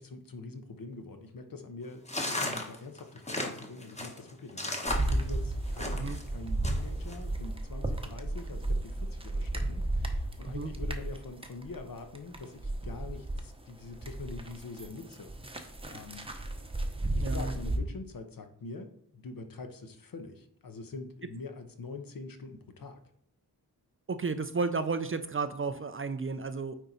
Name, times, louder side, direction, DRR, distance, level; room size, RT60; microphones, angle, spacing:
voice 1, 0.0-16.3 17.1-23.0, left 3 dB, 55° left, 7 dB, 1.1 m, -44 dB
sound 1, 2.1-6.2 6.6-7.2, left 1 dB, 15° left, 1.3 m, -35 dB
sound 2, 4.9-13.5 13.8-17.8, right 1 dB, 15° right, 0.9 m, -33 dB
voice 2, 17.2-17.5 24.1-26.7, right 4 dB, 35° right, 10 dB, 0.5 m, -32 dB
9.1 x 4.5 x 4.1 m, 0.66 s
wide cardioid pair, 100°, 40 cm